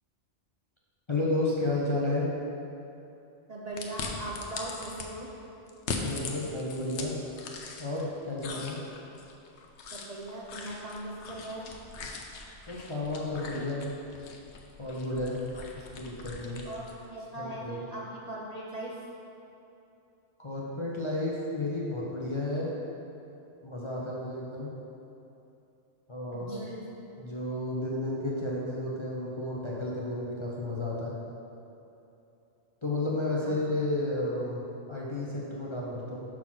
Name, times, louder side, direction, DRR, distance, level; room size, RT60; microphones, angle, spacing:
voice 1, 1.1-2.3 6.0-7.2 7.8-8.8 12.7-13.9 14.8-15.4 15.7-16.6 17.4-17.8 20.4-22.7 23.6-24.7 26.1-26.6 27.2-31.1 32.8-36.2, left 2 dB, 30° left, -6 dB, 0.6 m, -32 dB
voice 2, 3.5-5.3 8.5-8.6 9.9-11.7 16.6-19.0 26.3-26.9 33.4-33.6, right 1 dB, 45° right, -4 dB, 0.6 m, -39 dB
sound 1, 3.8-5.1 5.7-8.0 8.4-17.0, left 4 dB, 70° left, 0.9 m, -41 dB
5.9 x 4.0 x 6.0 m, 2.9 s
omnidirectional pair, 1.2 m